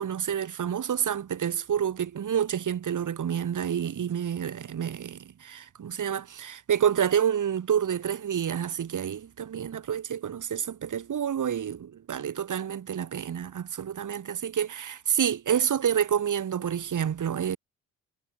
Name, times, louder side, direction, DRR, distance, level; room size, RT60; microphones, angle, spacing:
voice 1, 0.0-17.6, right 8 dB, 50° right, 4.0 m, -28 dB
supercardioid pair, 60°, 38 cm